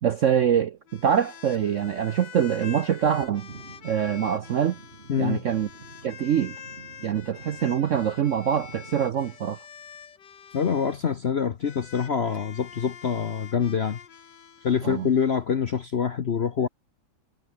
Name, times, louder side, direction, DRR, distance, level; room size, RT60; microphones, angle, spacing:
voice 1, 0.0-3.5 3.8-4.8 5.2-5.7 6.0-6.6 7.0-9.6 14.8-15.1, right 8 dB, 60° right, 0.8 m, -24 dB
sound 1, 0.9-11.0 11.6-15.4, left 7 dB, 70° left, 2.3 m, -46 dB
sound 2, 3.5-9.4, right 5 dB, 35° right, 1.7 m, -48 dB
voice 2, 5.1-5.4 10.5-14.0 14.6-16.7, left 7 dB, 50° left, 0.8 m, -25 dB
omnidirectional pair, 2.1 m